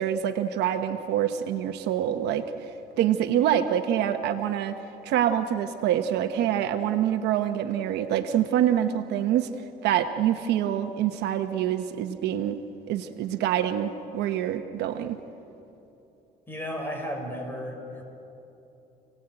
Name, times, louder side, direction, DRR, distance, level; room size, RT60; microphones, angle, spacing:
voice 1, 0.0-2.5 3.0-4.8 5.0-9.5 9.8-12.6 12.9-15.2, right 10 dB, 80° right, 7 dB, 1.1 m, -26 dB
voice 2, 16.5-18.0, equal, 10° left, 2 dB, 5.8 m, -34 dB
29.0 x 18.5 x 9.0 m, 2.9 s
cardioid pair, 110°, 17 cm